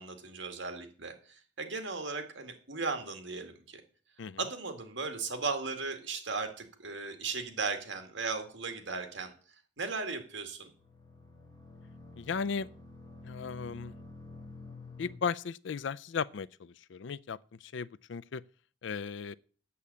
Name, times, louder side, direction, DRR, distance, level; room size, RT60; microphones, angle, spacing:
voice 1, 0.0-3.8 4.4-9.3 9.8-10.7, right 4 dB, 75° right, 2.1 m, -37 dB
sound 1, 10.7-15.2, left 2 dB, 20° left, 1.7 m, -49 dB
voice 2, 12.2-12.7 13.2-13.9 15.0-18.4 18.8-19.3, left 6 dB, 70° left, 0.4 m, -36 dB
8.5 x 7.5 x 8.4 m
head